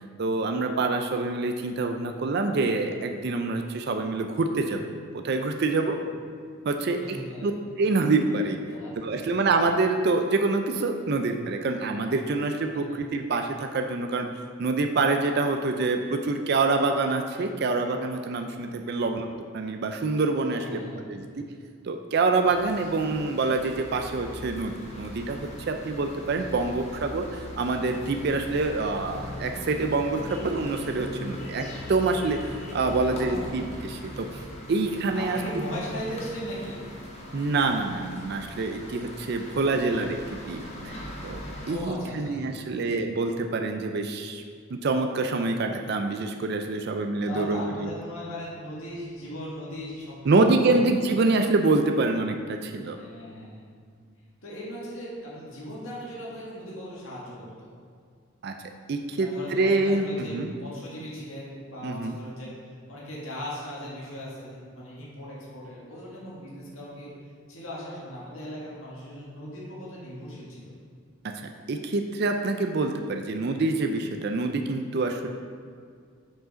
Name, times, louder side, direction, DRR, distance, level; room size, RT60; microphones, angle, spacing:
voice 1, 0.2-4.8 5.1-6.0 6.7-7.2 7.4-7.5 7.8-8.6 9.0-14.3 14.6-19.3 19.5-20.8 21.1-21.3 21.8-34.3 34.7-35.4 37.3-40.9 41.2-41.4 41.7-44.4 44.8-47.9 50.3-53.0 58.4-58.5 58.9-60.5 61.8-62.2 71.7-75.3, right 3 dB, 50° right, 5 dB, 0.4 m, -26 dB
voice 2, 7.0-7.5 8.7-9.3 12.7-13.0 18.9-19.1 20.5-21.0 33.0-33.6 35.1-36.8 39.6-39.7 41.7-42.9 47.2-50.2 50.4-50.8 52.9-53.7 54.4-57.7 59.1-62.5 62.9-67.1 67.5-70.7, equal, 75° left, -6 dB, 1.7 m, -38 dB
sound 1, 22.4-41.8, left 1 dB, 30° left, 1.0 m, -40 dB
6.3 x 4.8 x 5.2 m, 2.1 s
head